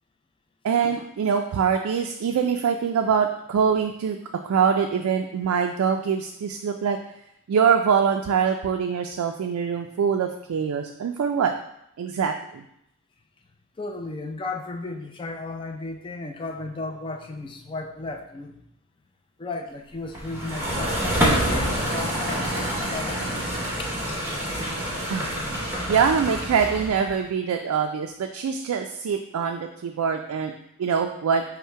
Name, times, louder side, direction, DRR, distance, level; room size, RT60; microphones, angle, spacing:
voice 1, 0.6-4.2 4.4-7.0 7.5-11.5 12.0-12.6 25.1-25.4 25.9-30.5 30.8-31.4, right 6 dB, 80° right, 4 dB, 0.3 m, -24 dB
voice 2, 13.8-18.6 19.4-24.2, left 3 dB, 20° left, 4 dB, 0.4 m, -35 dB
sound 1, 20.1-27.1, equal, 10° right, 0.8 m, -27 dB
5.4 x 2.1 x 4.5 m, 0.77 s
head